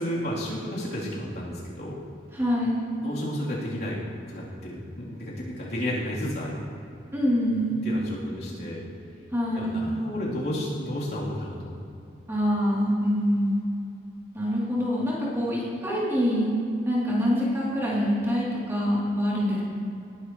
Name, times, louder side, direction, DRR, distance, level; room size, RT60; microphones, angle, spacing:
voice 1, 0.0-2.0 3.0-4.0 4.3-6.6 7.7-8.8 9.5-11.7, equal, 60° left, -7 dB, 3.4 m, -32 dB
voice 2, 2.4-2.8 7.1-7.8 9.3-9.8 12.3-13.6 14.3-16.5 16.9-19.6, equal, 15° right, -7 dB, 3.0 m, -25 dB
19.5 x 11.5 x 3.1 m, 2.6 s
head